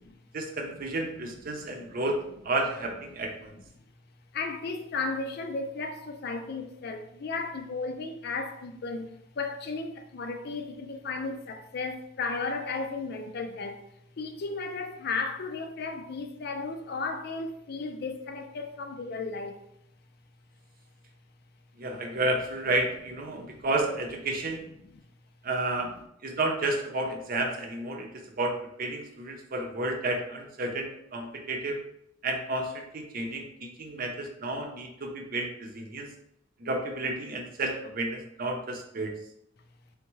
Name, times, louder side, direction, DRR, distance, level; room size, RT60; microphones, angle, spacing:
voice 1, 0.3-3.5 21.8-24.6 25.4-25.9 26.2-31.8 32.2-36.1 36.6-39.1, right 2 dB, 50° right, 0.7 m, -31 dB
voice 2, 1.5-2.0 3.3-3.4 4.3-13.9 14.2-19.6 23.4-23.6 24.8-25.0, left 4 dB, 55° left, 0.5 m, -35 dB
3.6 x 3.5 x 3.1 m
head